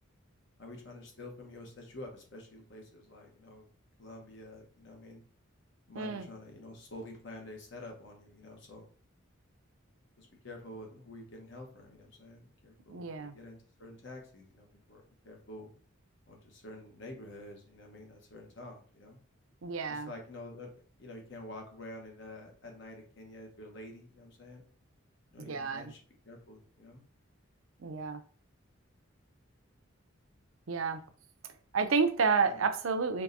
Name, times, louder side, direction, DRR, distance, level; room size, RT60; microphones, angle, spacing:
voice 1, 0.6-3.7 4.0-5.2 5.9-8.9 10.2-15.7 16.3-19.2 19.9-20.7 21.0-24.6 25.3-26.0 26.2-27.0 32.5-32.6, left 1 dB, 60° left, 1 dB, 1.1 m, -48 dB
voice 2, 5.9-6.3 12.9-13.3 19.6-20.1 25.4-25.9 27.8-28.2 30.7-31.0 31.7-33.2, right 5 dB, 75° right, 9 dB, 0.5 m, -30 dB
4.6 x 3.2 x 2.7 m, 0.42 s
head